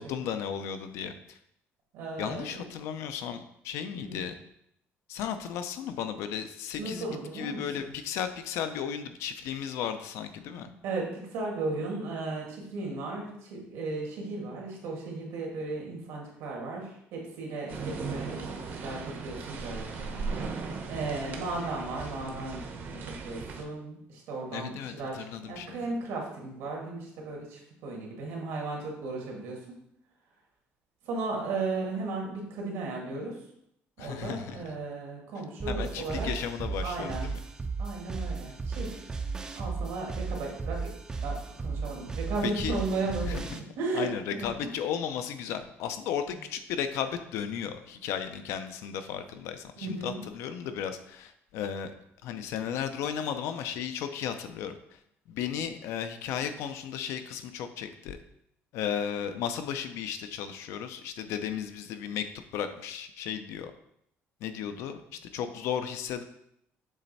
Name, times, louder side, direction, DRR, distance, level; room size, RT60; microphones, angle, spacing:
voice 1, 0.0-1.4 2.2-4.3 5.1-7.1 7.3-10.7 24.5-25.9 34.0-34.6 35.7-37.4 42.4-42.7 43.2-43.6 43.9-51.9 52.2-54.8 55.3-58.2 58.7-63.7 64.4-65.0 65.3-66.2, left 8 dB, 80° left, 9 dB, 0.6 m, -35 dB
voice 2, 1.9-2.6 4.0-4.2 6.8-7.6 10.8-29.8 31.0-33.4 34.0-36.3 36.8-37.2 37.8-38.9 39.6-40.8 41.2-41.4 41.6-44.7 49.8-50.2, right 3 dB, 85° right, -1 dB, 1.9 m, -35 dB
sound 1, 17.7-23.6, right 4 dB, 45° right, 0.7 m, -37 dB
sound 2, 35.6-43.6, right 4 dB, 15° right, 0.4 m, -35 dB
7.2 x 3.3 x 4.1 m, 0.75 s
cardioid pair, 175°, 5 cm